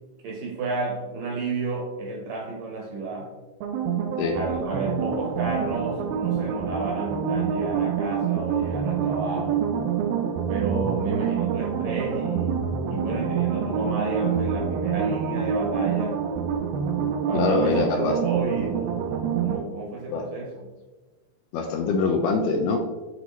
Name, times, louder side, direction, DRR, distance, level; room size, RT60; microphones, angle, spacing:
voice 1, 0.2-3.3 4.3-9.7 10.5-12.6 12.9-16.2 17.3-20.7, right 3 dB, 70° right, -1 dB, 2.1 m, -31 dB
sound 1, 3.6-19.6, right 7 dB, 85° right, 2.1 m, -26 dB
voice 2, 17.3-18.2 20.1-20.3 21.5-22.8, left 4 dB, 80° left, 3 dB, 2.4 m, -23 dB
8.6 x 4.1 x 3.0 m, 1.2 s
omnidirectional pair, 4.9 m